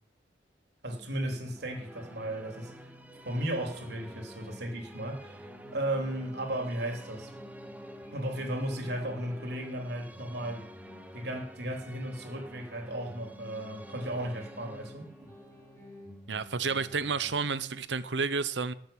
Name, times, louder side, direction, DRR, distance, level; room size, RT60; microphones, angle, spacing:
voice 1, 0.8-2.7 3.2-7.3 8.1-10.7 11.1-15.3, right 1 dB, 65° right, 3.6 m, -35 dB
sound 1, 1.2-17.8, left 1 dB, 15° left, 5.7 m, -52 dB
Musical instrument, 1.4-16.8, right 1 dB, 10° right, 1.1 m, -50 dB
voice 2, 16.3-18.7, right 4 dB, 85° right, 1.0 m, -30 dB
19.0 x 7.9 x 8.8 m
head